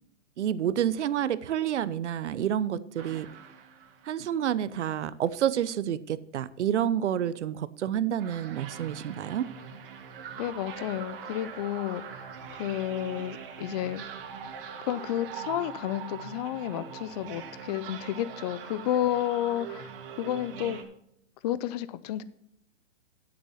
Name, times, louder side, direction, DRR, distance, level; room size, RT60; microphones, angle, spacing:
voice 1, 0.4-3.3 4.0-9.5, right 10 dB, 70° right, 17 dB, 0.8 m, -29 dB
sound 1, 3.0-4.4 8.2-20.8, right 7 dB, 50° right, 1.9 m, -42 dB
voice 2, 10.4-12.3 12.5-14.0 14.9-19.9 20.2-20.8 21.4-22.2, left 12 dB, 35° left, 16 dB, 0.6 m, -31 dB
9.8 x 8.0 x 5.7 m, 0.72 s
hypercardioid pair, 140°, 36 cm